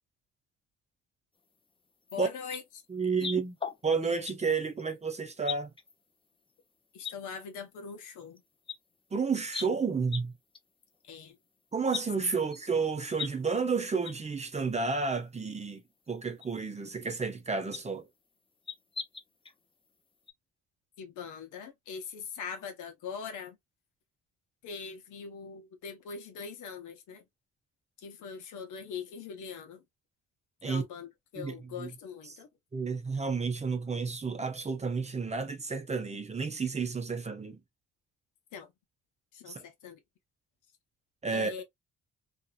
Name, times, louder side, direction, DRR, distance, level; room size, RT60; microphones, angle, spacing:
voice 1, 2.1-2.6 3.2-3.3 6.9-8.4 11.0-11.4 21.0-23.6 24.6-27.2 28.0-29.8 30.6-32.5 38.5-38.7 39.3-40.0 41.3-41.6, left 6 dB, 80° left, 0.9 m, -42 dB
sound 1, 2.1-2.2 2.5-2.6 3.1-4.3 4.6-4.8 5.4-5.9 6.5-6.6 7.0-7.1 8.4-8.5 8.7-8.8 9.5-9.7 10.1-10.2 10.5-10.6 10.9-11.0 11.9-12.0 12.5-13.3 13.6-13.7 14.0-14.1 14.5-14.6 15.6-15.7 16.4-16.5 17.7-17.9 18.7-19.5 19.9-20.0 20.3-20.4, left 6 dB, 20° left, 0.5 m, -38 dB
voice 2, 2.9-3.6 3.8-5.7 9.1-10.3 11.7-18.1 30.6-30.8 31.4-31.9 32.7-37.6 39.5-39.6 41.2-41.5, right 4 dB, 20° right, 0.7 m, -31 dB
2.8 x 2.5 x 2.3 m
cardioid pair, 90°, 30 cm